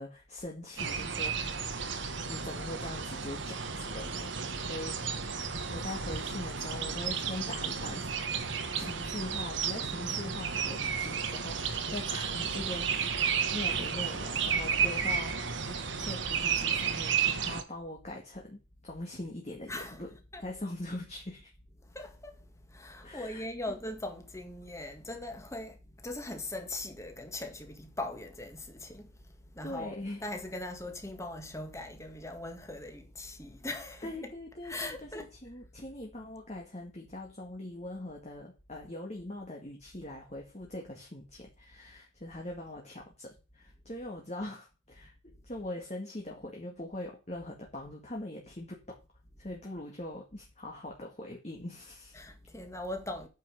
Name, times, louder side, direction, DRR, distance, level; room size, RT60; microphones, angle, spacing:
voice 1, 0.0-1.5 2.3-4.3 4.7-5.0 5.7-20.1 20.4-21.5 23.0-23.5 29.6-30.2 34.0-49.0 49.4-52.2, left 1 dB, 35° left, 2.0 m, -42 dB
sound 1, 0.8-17.6, right 6 dB, 70° right, 1.4 m, -32 dB
voice 2, 19.7-20.5 21.8-34.3 34.6-35.3 49.4-49.5 52.1-53.3, left 2 dB, 15° left, 1.9 m, -41 dB
9.4 x 5.7 x 6.5 m
head